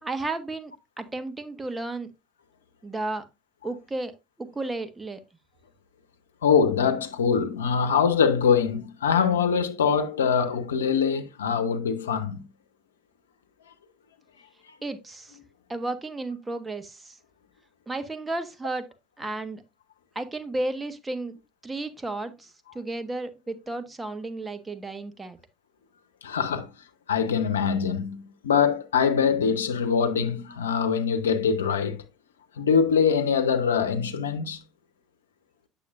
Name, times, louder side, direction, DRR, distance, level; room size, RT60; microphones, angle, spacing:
voice 1, 0.0-2.1 2.8-3.2 3.6-4.1 4.4-5.2 14.8-15.4 15.7-17.2 17.9-18.9 19.2-19.6 20.1-21.3 21.6-25.4, right 2 dB, 15° right, 1.3 m, -33 dB
voice 2, 6.4-12.4 26.2-26.7 27.1-32.0 32.6-34.6, left 6 dB, 85° left, 0.8 m, -23 dB
8.5 x 7.0 x 2.4 m
hypercardioid pair, 70°, 0 cm